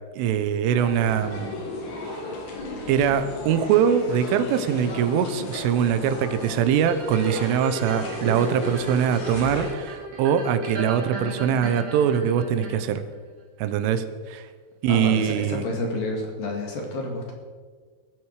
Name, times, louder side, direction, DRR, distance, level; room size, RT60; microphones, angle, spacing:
voice 1, 0.2-1.5 2.9-13.0 13.6-14.5 14.8-15.6, right 8 dB, 80° right, 11 dB, 3.4 m, -23 dB
sound 1, 0.7-9.7, left 2 dB, 85° left, 5.8 m, -35 dB
sound 2, 6.9-13.1 13.6-13.7, right 2 dB, 50° right, 5.3 m, -34 dB
voice 2, 14.9-17.3, left 2 dB, 55° left, 1 dB, 3.5 m, -29 dB
21.5 x 13.5 x 4.9 m, 1.5 s
omnidirectional pair, 5.7 m